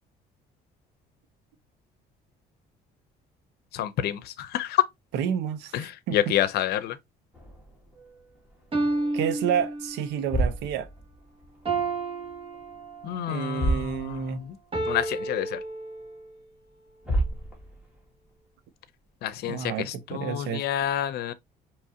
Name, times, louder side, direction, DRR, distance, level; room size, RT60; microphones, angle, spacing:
voice 1, 3.7-4.8 5.7-7.0 13.0-14.5 14.9-15.6 19.2-21.3, left 11 dB, 70° left, 0.6 m, -28 dB
voice 2, 5.1-6.4 9.1-10.9 13.3-14.4 19.5-20.6, right 9 dB, 85° right, 0.7 m, -30 dB
sound 1, 7.3-9.0 9.3-9.6 10.1-11.9 12.2-12.9 13.1-13.2 13.5-14.5 14.9-15.0 15.6-15.7 16.7-16.8 17.0-18.0, right 1 dB, 5° right, 2.1 m, -31 dB
sound 2, 8.0-8.1 8.7-10.3 11.6-13.3 14.7-16.3, right 2 dB, 30° right, 1.6 m, -31 dB
4.7 x 3.0 x 2.7 m
cardioid pair, 110°, 17 cm